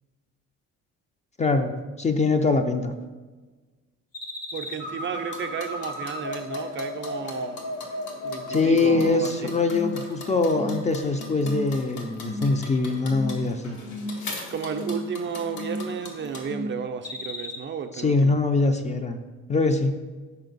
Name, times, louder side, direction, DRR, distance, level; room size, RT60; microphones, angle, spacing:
voice 1, 1.4-1.7 2.0-2.9 8.5-13.8 17.9-19.2 19.5-20.0, left 3 dB, 25° left, 6 dB, 0.4 m, -23 dB
sound 1, 4.1-9.1 9.4-9.9 10.3-10.8 11.2-11.6 12.0-12.5 12.8-13.4 13.7-14.2 14.5-15.0 15.3-15.9 16.2-16.7 17.0-17.6, left 1 dB, 55° left, 1.0 m, -34 dB
voice 2, 4.5-7.7 8.2-9.5 14.5-18.4, right 6 dB, 40° right, 5 dB, 0.4 m, -33 dB
sound 2, 4.6-16.5, left 3 dB, 80° left, 1.1 m, -42 dB
5.7 x 4.4 x 3.9 m, 1.3 s
cardioid pair, 90°, 30 cm